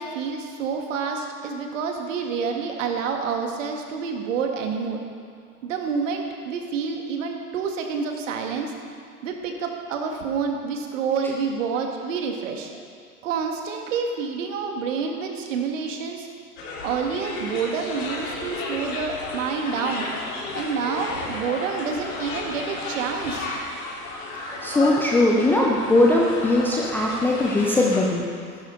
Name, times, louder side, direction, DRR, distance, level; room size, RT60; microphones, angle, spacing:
voice 1, 0.0-5.0 5.6-8.7 9.2-12.7 13.2-16.3 16.8-20.1 20.5-23.5, right 5 dB, 55° right, 3 dB, 1.9 m, -28 dB
sound 1, 16.6-28.0, left 2 dB, 55° left, 3.7 m, -33 dB
voice 2, 24.6-28.2, left 2 dB, 5° left, -3 dB, 0.5 m, -20 dB
14.5 x 11.5 x 3.8 m, 2.1 s
figure-of-eight pair, 105°, 47 cm